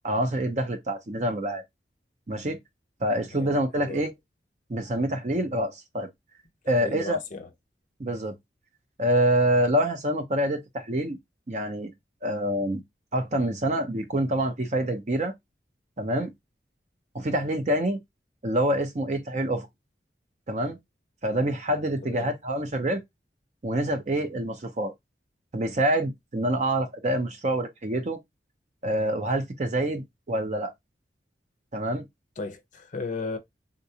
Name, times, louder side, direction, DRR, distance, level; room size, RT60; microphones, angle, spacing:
voice 1, 0.0-1.6 2.3-2.6 3.0-4.1 4.7-6.1 6.7-7.2 8.0-8.3 9.0-11.2 11.5-11.9 12.2-12.8 13.1-15.3 16.0-16.3 17.1-18.0 18.4-19.7 20.5-20.8 21.2-23.0 23.6-24.9 25.5-28.2 28.8-30.7 31.7-32.0, right 1 dB, 40° right, 0.6 m, -26 dB
voice 2, 3.2-4.1 6.6-7.5 22.0-22.3 32.4-33.4, left 3 dB, 45° left, 0.5 m, -36 dB
3.8 x 2.3 x 2.7 m
head